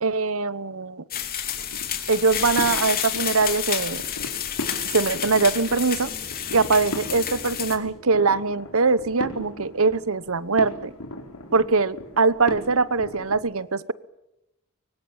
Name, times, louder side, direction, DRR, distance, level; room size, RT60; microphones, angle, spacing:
voice 1, 0.0-1.0 2.1-4.0 4.9-6.1 6.5-10.9 11.5-13.9, right 4 dB, 65° right, 17 dB, 1.1 m, -22 dB
sound 1, 1.1-7.8, left 9 dB, 40° left, 3.4 m, -29 dB
sound 2, 1.4-13.4, left 1 dB, 85° left, 4.4 m, -38 dB
24.5 x 24.0 x 8.9 m, 0.90 s
head